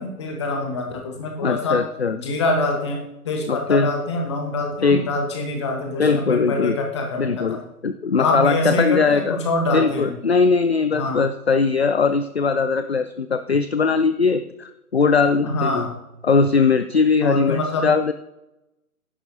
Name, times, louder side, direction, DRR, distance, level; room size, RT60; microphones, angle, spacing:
voice 1, 0.0-1.8 2.2-7.6 8.2-10.1 10.9-11.2 15.4-16.0 17.2-17.9, left 2 dB, 20° left, 2 dB, 1.3 m, -25 dB
voice 2, 1.4-2.2 3.5-3.9 4.8-5.0 6.0-6.7 7.2-7.6 7.8-9.4 9.7-15.9 16.2-18.1, left 4 dB, 45° left, 11 dB, 0.5 m, -20 dB
15.5 x 11.0 x 2.8 m, 0.92 s
figure-of-eight pair, 145°, 45 cm